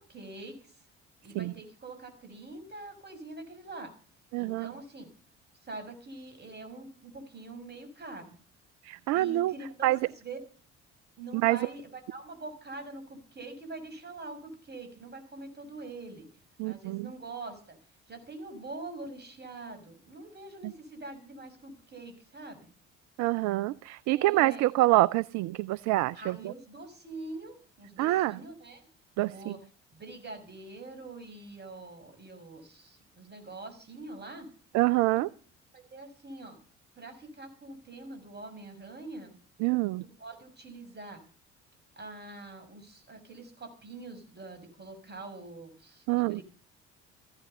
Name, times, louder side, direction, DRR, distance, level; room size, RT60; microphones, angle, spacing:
voice 1, 0.1-0.6 1.2-3.9 4.4-5.1 5.7-8.3 9.1-10.4 11.2-16.3 16.6-17.8 18.1-22.6 24.1-24.6 26.2-28.8 29.3-29.6 29.9-34.5 35.2-35.3 35.7-36.6 37.0-39.4 40.2-41.2 42.0-46.4, right 2 dB, 30° right, 7 dB, 5.8 m, -44 dB
voice 2, 4.3-4.7 8.8-9.5 9.8-10.0 11.3-11.6 16.6-17.1 20.6-20.7 23.2-26.5 28.0-28.4 29.2-29.6 34.7-35.3 39.6-40.0 46.1-46.4, right 18 dB, 50° right, 19 dB, 0.6 m, -26 dB
15.0 x 11.5 x 5.5 m, 0.42 s
figure-of-eight pair, 50°, 35 cm